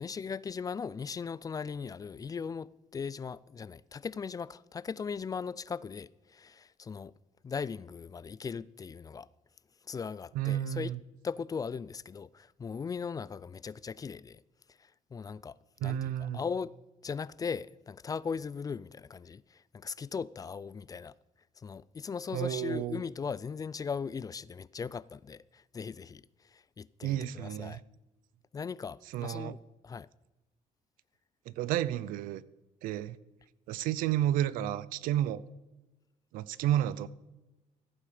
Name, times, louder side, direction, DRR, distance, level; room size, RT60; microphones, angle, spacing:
voice 1, 0.0-7.1 7.4-9.3 9.8-10.9 11.2-14.4 14.8-16.7 17.0-21.1 21.6-27.8 28.5-29.6 29.8-30.1, left 6 dB, 25° left, 0.4 m, -38 dB
voice 2, 10.3-11.0 15.8-16.4 22.3-23.0 27.0-27.8 29.1-29.5 31.5-32.4 32.8-33.2 33.7-35.4 36.3-37.1, right 12 dB, 85° right, 0.6 m, -31 dB
15.0 x 8.8 x 5.0 m
cardioid pair, 100°, 14 cm